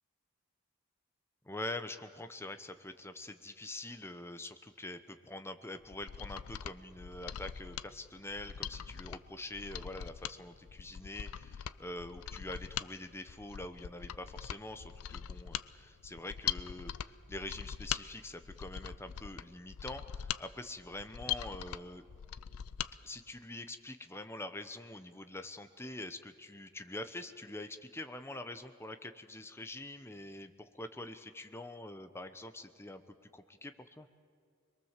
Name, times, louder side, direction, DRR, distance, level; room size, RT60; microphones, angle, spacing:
voice 1, 1.4-22.0 23.0-33.0 33.3-34.1, left 1 dB, 10° left, 9 dB, 0.8 m, -45 dB
Mechanisms, 5.8-22.9 23.3-23.4, left 9 dB, 80° left, 0.5 m, -42 dB
23.0 x 22.5 x 7.4 m, 2.1 s
head